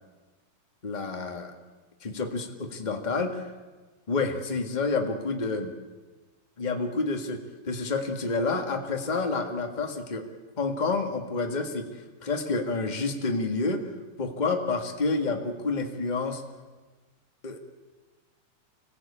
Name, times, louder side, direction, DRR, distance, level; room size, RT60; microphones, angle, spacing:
voice 1, 0.8-1.5 2.0-3.5 4.1-5.7 6.6-10.2 10.6-11.9 12.2-13.8 14.2-16.4 17.4-17.6, left 3 dB, 25° left, 4 dB, 0.9 m, -29 dB
25.5 x 17.5 x 8.7 m, 1.3 s
omnidirectional pair, 4.2 m